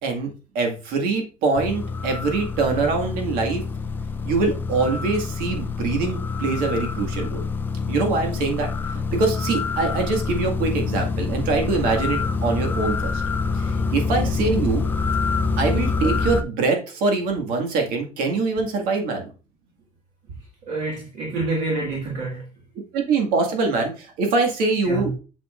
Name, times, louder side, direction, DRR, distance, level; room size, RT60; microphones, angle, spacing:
voice 1, 0.0-3.6 4.2-7.5 7.9-8.7 8.9-13.1 13.5-14.9 15.6-19.3 22.9-25.2, right 3 dB, 70° right, 2.0 m, -24 dB
sound 1, 1.6-16.4, left 4 dB, 15° left, 0.4 m, -26 dB
voice 2, 20.7-22.4 24.9-25.1, right 2 dB, 55° right, 1.9 m, -27 dB
8.2 x 6.4 x 2.6 m
cardioid pair, 180°, 15 cm